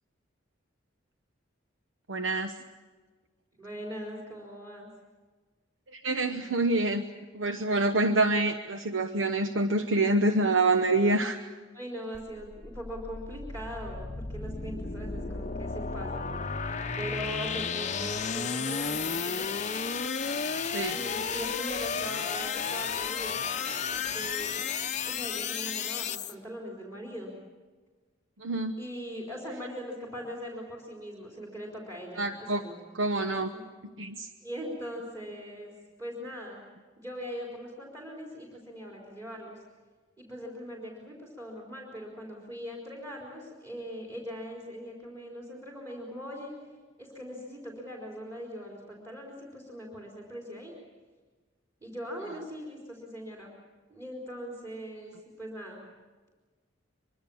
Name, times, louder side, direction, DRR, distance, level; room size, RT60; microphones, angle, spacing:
voice 1, 2.1-2.5 5.9-7.0 7.3-11.4 20.7-21.0 28.4-28.7 32.2-32.6 32.9-33.5 34.0-34.3, right 2 dB, 70° right, 7 dB, 1.0 m, -26 dB
voice 2, 3.6-4.9 11.7-16.6 16.9-19.5 20.9-23.7 23.9-24.6 25.0-27.3 28.8-32.8 33.2-33.6 34.4-35.7 36.0-36.6 37.0-39.6 40.2-46.5 47.0-50.7 51.8-53.5 53.9-55.8, equal, 20° right, -3 dB, 4.1 m, -41 dB
sound 1, 12.1-26.3, left 6 dB, 35° left, 0.8 m, -33 dB
24.0 x 24.0 x 7.1 m, 1.4 s
head